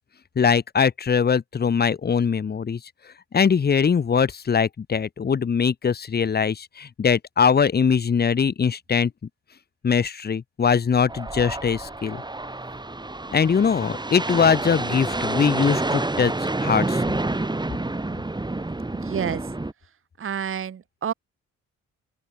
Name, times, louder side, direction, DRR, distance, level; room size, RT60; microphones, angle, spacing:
voice 1, 0.4-2.8 3.3-9.1 9.8-12.2 13.3-16.3 16.6-17.0, left 6 dB, 30° left, 1.1 m, -21 dB
sound 1, 11.1-19.7, right 2 dB, 15° right, 5.7 m, -28 dB
voice 2, 18.9-19.4 20.2-21.1, right 8 dB, 45° right, 1.6 m, -29 dB
open air
cardioid pair, 90°, 30 cm